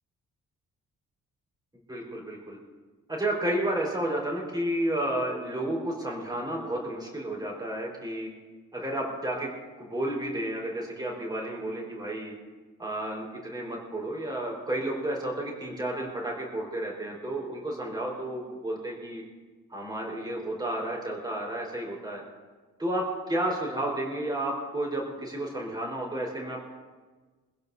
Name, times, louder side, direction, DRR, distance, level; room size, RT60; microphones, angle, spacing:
voice 1, 1.9-2.6 3.1-8.3 8.7-9.5 9.8-12.3 12.8-19.2 19.7-22.2 22.8-26.6, right 1 dB, 15° right, -2 dB, 4.6 m, -31 dB
25.0 x 16.0 x 2.8 m, 1.3 s
wide cardioid pair, 175°, 31 cm